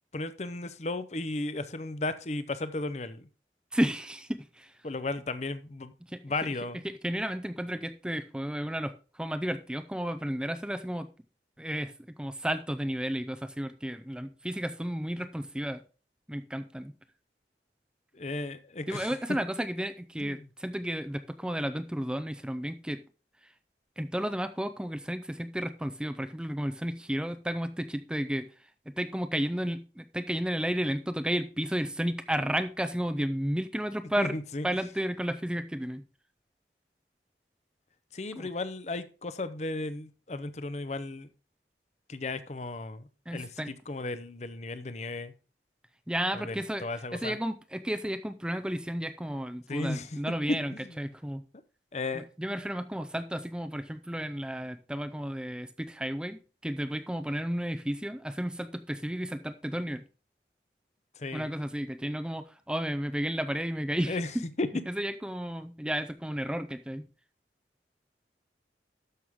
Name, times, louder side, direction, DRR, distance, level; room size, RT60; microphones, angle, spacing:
voice 1, 0.1-3.3 4.8-5.9 6.2-6.8 18.1-19.2 20.2-20.5 34.2-34.6 38.1-41.3 42.1-45.3 46.3-47.4 49.7-50.1 50.7-50.9 51.9-52.2 61.2-61.5 64.1-64.3 64.6-64.7, left 2 dB, 40° left, 0.7 m, -35 dB
voice 2, 3.7-4.7 6.1-6.2 6.8-11.1 11.6-11.9 12.2-15.8 16.3-16.9 18.9-23.0 23.4-23.5 24.0-28.5 29.0-34.3 34.6-36.0 38.4-38.5 43.3-43.7 46.1-46.9 47.1-51.4 52.1-60.0 61.3-64.4 64.9-67.1, equal, 5° right, 0.5 m, -32 dB
12.5 x 6.3 x 3.6 m
head